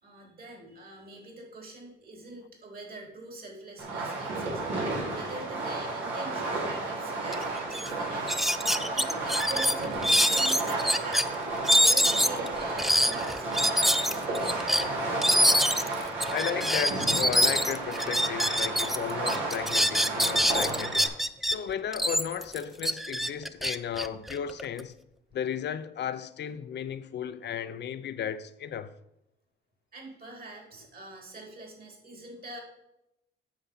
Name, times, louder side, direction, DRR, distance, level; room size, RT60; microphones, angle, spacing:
voice 1, 0.0-14.5 29.9-32.6, right 2 dB, 50° right, 4.1 m, -44 dB
Fireworks, 3.8-21.1, right 2 dB, 80° right, 4.0 m, -32 dB
sound 1, 7.3-7.4 7.7-7.9 8.3-11.2 11.7-19.0 19.3-21.6 21.9-24.8, equal, ahead, 0.5 m, -25 dB
voice 2, 16.3-21.1 21.4-25.0 25.3-28.9, left 9 dB, 60° left, 0.7 m, -34 dB
9.0 x 6.9 x 5.6 m
cardioid pair, 90°, 20 cm